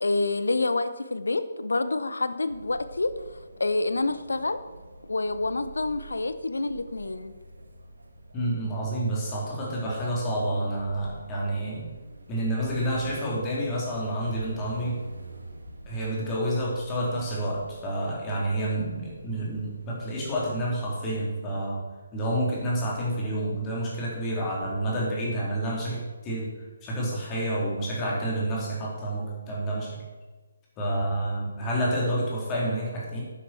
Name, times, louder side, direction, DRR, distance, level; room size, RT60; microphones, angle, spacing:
voice 1, 0.0-3.1 3.6-4.6 5.0-7.3, left 2 dB, 70° left, 12 dB, 0.8 m, -27 dB
sound 1, 2.5-20.8, right 2 dB, 70° right, 1.9 m, -46 dB
voice 2, 8.3-11.9 12.3-15.0 15.9-21.8 22.1-26.5 26.8-30.0 30.8-33.2, right 1 dB, 20° left, -4 dB, 3.8 m, -29 dB
11.5 x 10.0 x 4.6 m, 1.3 s
figure-of-eight pair, 140°, 0 cm